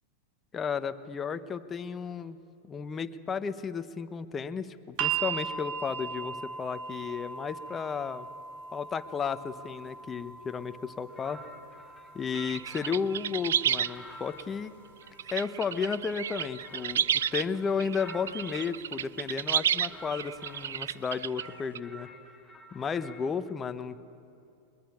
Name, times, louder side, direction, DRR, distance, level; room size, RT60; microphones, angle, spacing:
voice 1, 0.5-2.4 2.7-8.3 8.7-11.4 12.1-14.7 15.3-17.0 17.3-22.1 22.7-24.0, left 6 dB, 20° left, 10 dB, 1.1 m, -33 dB
sound 1, 5.0-17.1 18.1-18.2, right 7 dB, 55° right, 2.3 m, -40 dB
sound 2, 11.1-13.2 13.7-18.8 19.4-21.0 21.3-23.3, equal, ahead, 2.8 m, -50 dB
sound 3, 12.4-13.9 14.4-14.5 15.1-17.5 17.8-21.8, right 9 dB, 80° right, 0.5 m, -31 dB
22.0 x 21.5 x 8.6 m, 2.6 s
hypercardioid pair, 110°, 0 cm